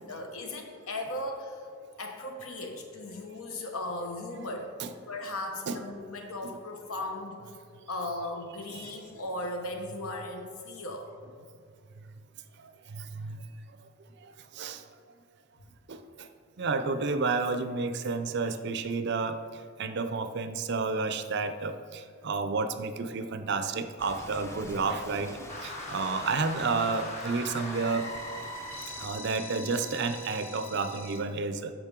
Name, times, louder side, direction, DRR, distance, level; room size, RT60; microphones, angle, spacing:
voice 1, 0.1-1.7 2.0-4.7 5.0-7.4 7.9-11.1 23.5-23.7, left 1 dB, 80° left, 3 dB, 1.1 m, -37 dB
voice 2, 12.6-13.4 14.2-14.8 15.9-16.3 16.6-19.4 19.8-28.1 29.0-31.7, right 4 dB, 50° right, 9 dB, 0.4 m, -31 dB
Rain, 24.0-29.1, left 1 dB, 10° left, 0.5 m, -46 dB
sound 1, 25.5-31.2, left 1 dB, 30° left, 1.0 m, -41 dB
12.0 x 5.1 x 3.7 m, 2.3 s
head